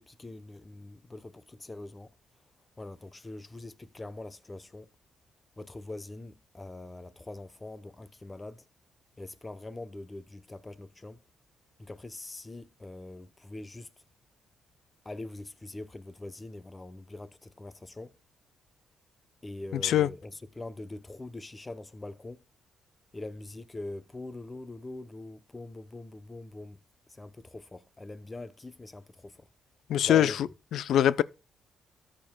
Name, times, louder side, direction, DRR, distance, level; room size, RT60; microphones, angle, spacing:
voice 1, 0.0-2.1 2.8-4.9 5.6-8.6 9.2-11.2 11.8-13.9 15.0-18.1 19.4-20.3 20.6-22.4 23.1-26.8 27.2-29.3 30.0-30.4, left 2 dB, 20° left, 0.8 m, -43 dB
voice 2, 19.7-20.1 29.9-31.2, left 11 dB, 70° left, 0.4 m, -24 dB
13.5 x 7.5 x 2.3 m
cardioid pair, 90°, 0 cm